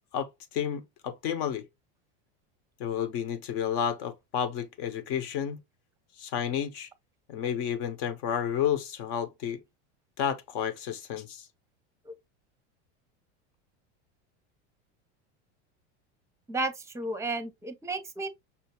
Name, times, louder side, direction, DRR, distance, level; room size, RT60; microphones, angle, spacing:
voice 1, 0.1-1.7 2.8-5.6 6.2-6.9 7.3-9.6 10.2-11.5, left 9 dB, 60° left, 1.0 m, -31 dB
voice 2, 16.5-18.3, right 2 dB, 10° right, 0.6 m, -33 dB
5.7 x 2.7 x 2.8 m
supercardioid pair, 130°, 34 cm